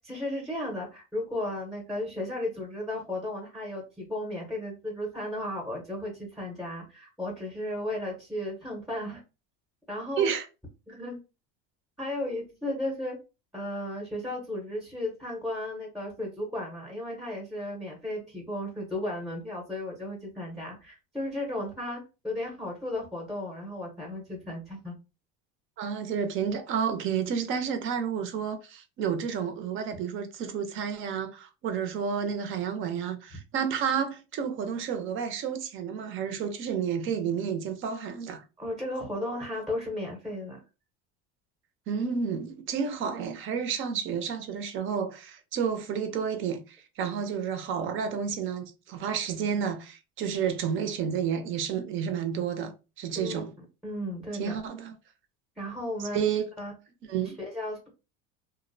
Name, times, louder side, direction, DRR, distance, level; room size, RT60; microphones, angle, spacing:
voice 1, 0.0-9.2 9.9-10.3 10.9-11.2 12.0-13.2 13.5-25.0 38.6-40.6 53.1-54.6 55.6-56.3 56.6-56.7 57.4-57.9, left 1 dB, ahead, 0.6 m, -35 dB
voice 2, 25.8-38.4 41.9-52.7 53.0-53.5 54.4-54.9 56.1-56.5 57.1-57.4, right 7 dB, 40° right, 0.5 m, -30 dB
2.5 x 2.1 x 2.5 m
supercardioid pair, 130°, 30 cm